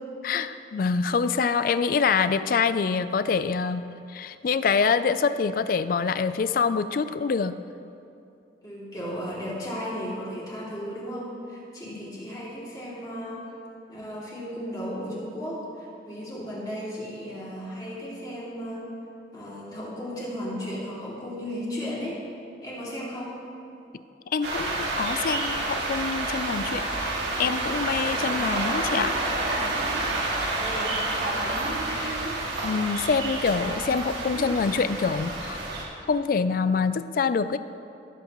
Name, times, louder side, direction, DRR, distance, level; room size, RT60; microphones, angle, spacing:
voice 1, 0.2-7.6 11.9-12.0 24.3-29.2 31.9-32.2 32.6-35.6 36.1-37.6, left 5 dB, 50° left, 13 dB, 0.3 m, -26 dB
voice 2, 8.6-13.4 13.9-18.9 19.3-22.2 22.6-23.3 30.6-31.0, equal, 20° left, -7 dB, 2.4 m, -35 dB
sound 1, 24.4-35.8, right 2 dB, 75° right, 2.0 m, -29 dB
18.0 x 8.1 x 3.0 m, 2.7 s
head